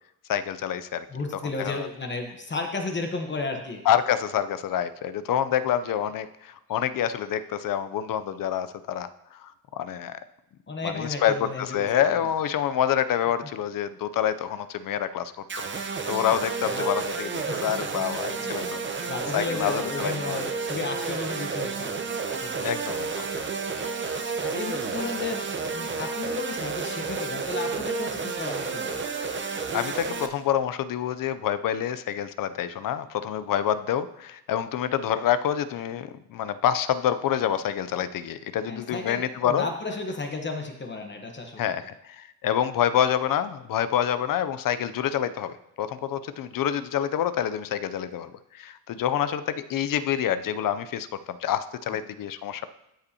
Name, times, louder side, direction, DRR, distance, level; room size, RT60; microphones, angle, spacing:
voice 1, 0.3-1.1 1.3-1.9 3.9-10.2 10.8-15.3 15.8-20.4 22.6-23.1 29.7-39.7 41.6-52.7, left 10 dB, 60° left, 13 dB, 0.5 m, -27 dB
voice 2, 1.1-3.8 10.7-11.9 16.7-16.9 17.5-17.6 18.4-18.7 19.1-22.0 22.3-22.8 24.4-25.4 25.7-29.0 38.7-41.6, left 3 dB, 30° left, 3 dB, 0.9 m, -33 dB
sound 1, 15.5-30.3, right 5 dB, 30° right, 0.7 m, -31 dB
12.5 x 5.4 x 2.8 m, 0.90 s
cardioid pair, 120°, 38 cm